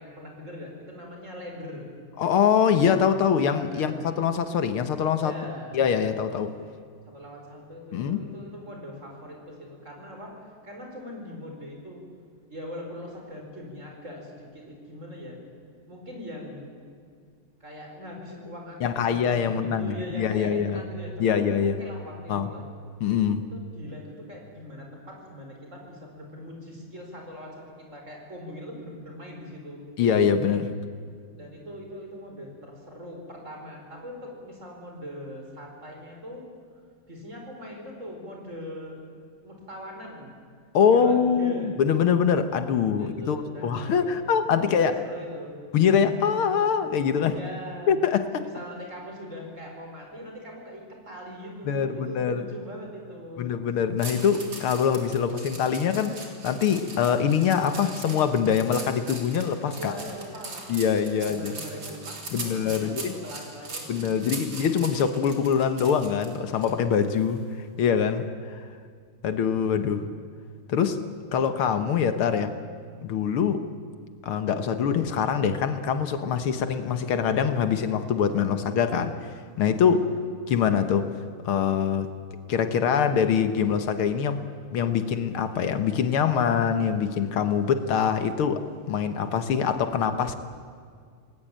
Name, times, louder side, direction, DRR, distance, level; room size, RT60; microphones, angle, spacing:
voice 1, 0.0-1.9 3.7-4.0 5.2-5.8 7.1-12.0 12.5-15.4 15.9-16.7 17.6-22.7 23.5-29.9 31.3-36.5 37.1-39.0 39.4-40.3 40.9-41.7 43.0-45.6 47.2-48.0 48.4-53.5 59.7-60.7 61.2-64.0 79.8-80.1, equal, 35° right, 1 dB, 5.3 m, -41 dB
voice 2, 2.2-5.3 5.7-6.5 7.9-8.2 18.8-20.8 21.2-21.8 22.3-22.5 23.0-23.4 30.0-30.7 40.7-45.0 45.7-47.4 47.9-48.4 51.7-52.4 53.4-59.9 60.7-61.5 62.3-63.1 63.9-67.4 67.8-68.6 69.2-70.0 70.7-71.0 71.3-72.5 73.0-73.6 74.2-80.0 80.5-81.1 81.4-82.1 82.5-84.4 84.7-90.4, left 7 dB, 75° left, 10 dB, 2.0 m, -24 dB
sound 1, 54.0-66.7 67.1-67.4, right 3 dB, 60° right, 4.1 m, -40 dB
27.0 x 19.5 x 8.8 m, 2.1 s
omnidirectional pair, 2.4 m